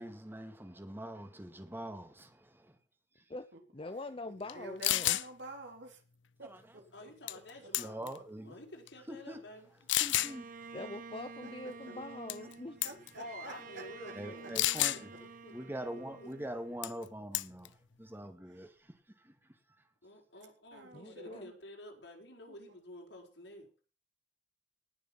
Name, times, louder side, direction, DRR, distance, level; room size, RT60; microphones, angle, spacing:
voice 1, 0.0-2.8 3.2-3.3 6.4-6.6 7.8-8.6 9.1-9.4 10.0-10.7 14.1-15.1 15.5-19.3, right 1 dB, 10° right, 2.1 m, -44 dB
voice 2, 3.7-5.2 10.7-12.8 20.9-21.5, left 2 dB, 30° left, 0.7 m, -43 dB
voice 3, 4.3-6.0 6.4-8.2 11.4-11.5 12.8-14.1 18.5-18.7 20.7-21.6 22.5-22.6, right 2 dB, 75° right, 3.6 m, -50 dB
sound 1, 4.5-4.6 4.8-5.3 7.3-7.5 7.7-8.2 8.9-9.0 9.9-10.3 12.3-12.5 12.8-13.1 14.6-15.0 16.8-17.0 17.3-17.7, left 15 dB, 90° left, 0.6 m, -30 dB
voice 4, 6.9-8.1 8.4-9.7 13.2-14.5 14.9-15.5 15.9-16.3 20.0-23.7, left 1 dB, 75° left, 4.9 m, -50 dB
Bowed string instrument, 10.1-17.4, right 4 dB, 50° right, 1.3 m, -50 dB
19.0 x 6.9 x 5.8 m
head